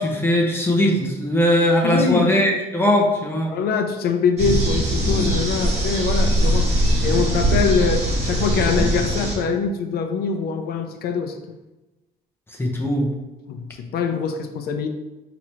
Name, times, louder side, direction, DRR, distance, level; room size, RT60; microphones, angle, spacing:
voice 1, 0.0-3.5 12.6-13.1, left 1 dB, 15° left, -1 dB, 0.8 m, -19 dB
voice 2, 1.8-2.3 3.5-6.7 7.0-11.6 13.5-14.9, left 5 dB, 75° left, 6 dB, 0.5 m, -23 dB
sound 1, 4.4-9.4, right 1 dB, 40° right, 1.4 m, -21 dB
4.9 x 2.9 x 3.0 m, 1.1 s
cardioid pair, 125°, 17 cm